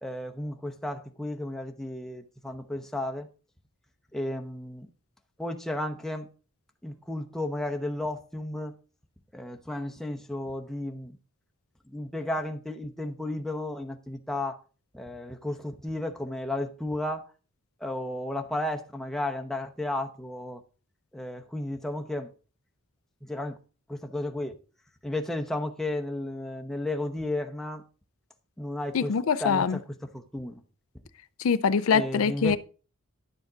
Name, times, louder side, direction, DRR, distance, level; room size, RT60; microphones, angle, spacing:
voice 1, 0.0-3.3 4.1-4.9 5.4-6.3 6.8-8.8 9.3-11.2 11.9-14.6 14.9-17.2 17.8-20.6 21.1-22.3 23.2-23.6 23.9-24.6 25.0-27.8 28.6-30.6 31.9-32.6, left 1 dB, ahead, 0.9 m, -33 dB
voice 2, 28.9-29.8 31.4-32.6, left 6 dB, 70° left, 0.5 m, -24 dB
11.0 x 7.2 x 3.9 m
head